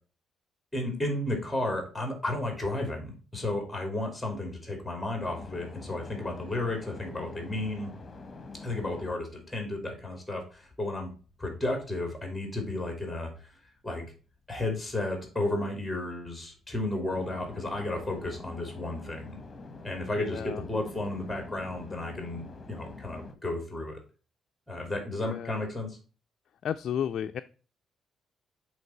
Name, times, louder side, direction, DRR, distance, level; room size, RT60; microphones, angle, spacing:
voice 1, 0.7-7.9 8.6-11.1 11.4-13.3 13.8-14.1 14.5-19.4 19.8-24.0 24.7-26.0, left 2 dB, 5° left, 3 dB, 2.6 m, -33 dB
sound 1, 5.2-11.4 11.7-23.4, left 3 dB, 30° left, 1.3 m, -46 dB
voice 2, 20.2-20.7 25.2-25.6 26.6-27.4, left 9 dB, 65° left, 8 dB, 0.3 m, -33 dB
8.0 x 3.3 x 4.3 m, 0.36 s
cardioid pair, 90°, 0 cm